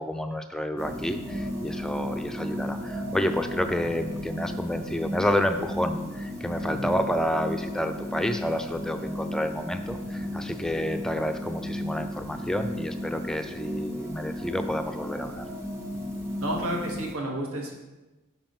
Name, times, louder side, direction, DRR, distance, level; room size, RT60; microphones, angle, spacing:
voice 1, 0.0-15.5, equal, 5° left, 7 dB, 0.3 m, -29 dB
sound 1, 0.8-17.1, equal, 15° right, 1.1 m, -34 dB
voice 2, 16.4-17.7, right 1 dB, 80° right, 0 dB, 1.3 m, -32 dB
5.9 x 4.3 x 5.3 m, 1.1 s
head